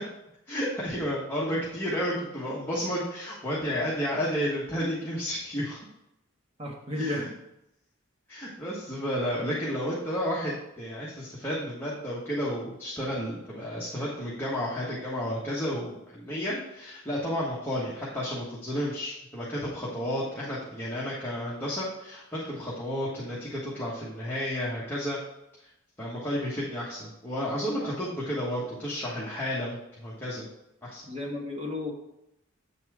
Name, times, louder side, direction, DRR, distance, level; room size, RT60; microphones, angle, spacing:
voice 1, 0.5-5.8 7.0-7.3 8.3-25.2 26.0-30.5 30.8-31.0, equal, 10° left, -7 dB, 1.2 m, -32 dB
voice 2, 6.6-7.3 27.8-27.9 31.0-31.9, left 2 dB, 30° right, -1 dB, 1.4 m, -33 dB
8.0 x 4.2 x 4.8 m, 0.85 s
head